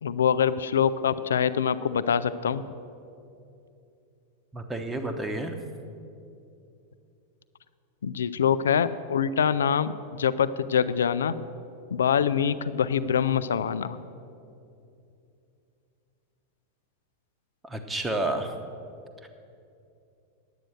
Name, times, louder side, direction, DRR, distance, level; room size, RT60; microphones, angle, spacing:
voice 1, 0.0-2.7 8.0-11.3 11.9-14.0, left 8 dB, 65° left, 14 dB, 0.4 m, -25 dB
voice 2, 4.5-5.5 17.6-18.5 19.2-19.3, right 2 dB, 10° right, 6 dB, 1.0 m, -30 dB
10.0 x 8.8 x 6.5 m, 2.6 s
figure-of-eight pair, 90°, 0 cm